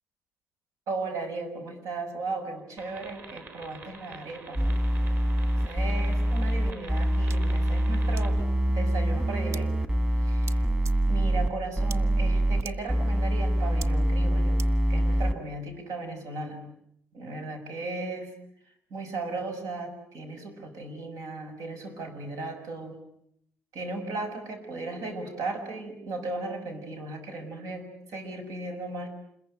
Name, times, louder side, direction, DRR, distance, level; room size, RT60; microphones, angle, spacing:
voice 1, 0.9-4.6 5.6-8.4 8.7-9.7 10.2-10.7 11.1-14.6 14.9-16.6 17.1-18.3 18.9-23.0 23.7-29.1, right 3 dB, 85° right, 6 dB, 6.5 m, -36 dB
sound 1, 2.8-8.3, right 3 dB, 45° right, 5.0 m, -47 dB
sound 2, 4.6-11.5 11.8-12.6 12.9-15.3, right 1 dB, 15° right, 1.9 m, -25 dB
sound 3, 7.3-7.4 8.2-8.3 9.5-9.6 10.4-10.6 10.8-10.9 11.9-12.0 12.6-12.7 13.8-13.9 14.6-14.7, right 6 dB, 60° right, 1.1 m, -40 dB
28.0 x 22.0 x 9.0 m, 0.73 s
wide cardioid pair, 165°, 5 cm